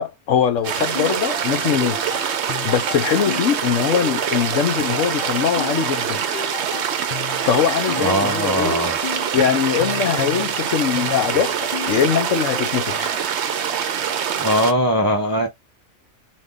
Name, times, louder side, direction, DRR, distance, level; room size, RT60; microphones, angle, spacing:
voice 1, 0.0-2.3 2.6-6.5 7.2-8.9 9.3-13.3, left 8 dB, 70° left, 1.1 m, -22 dB
sound 1, 0.6-12.9, left 9 dB, 50° left, 0.7 m, -35 dB
sound 2, 0.6-14.7, right 8 dB, 60° right, 0.8 m, -24 dB
voice 2, 8.0-9.0 14.4-15.5, equal, 25° right, 0.5 m, -20 dB
4.1 x 2.6 x 3.7 m
omnidirectional pair, 1.4 m